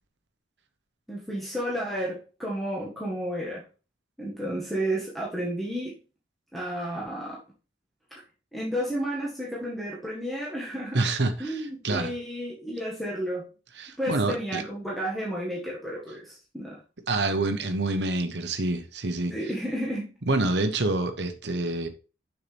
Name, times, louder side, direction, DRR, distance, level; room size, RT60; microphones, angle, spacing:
voice 1, 1.1-3.6 4.2-6.0 6.5-7.4 8.5-11.1 11.4-13.5 14.0-16.8 19.3-20.1, equal, ahead, 1.6 m, -32 dB
voice 2, 10.9-12.1 13.8-14.6 17.1-19.5 20.3-21.9, right 2 dB, 85° right, 1.0 m, -27 dB
6.9 x 5.8 x 3.4 m
head